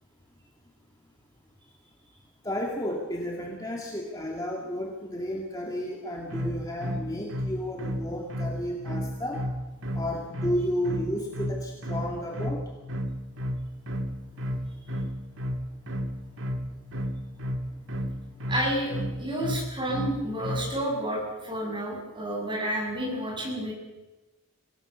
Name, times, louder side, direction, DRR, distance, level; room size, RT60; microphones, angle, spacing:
voice 1, 2.4-9.4 9.9-12.6, equal, 15° left, 0 dB, 2.1 m, -32 dB
sound 1, 6.3-20.8, equal, 60° right, 1.7 m, -32 dB
voice 2, 18.5-23.7, right 1 dB, 20° right, -2 dB, 7.6 m, -30 dB
25.0 x 17.5 x 7.0 m, 1.1 s
head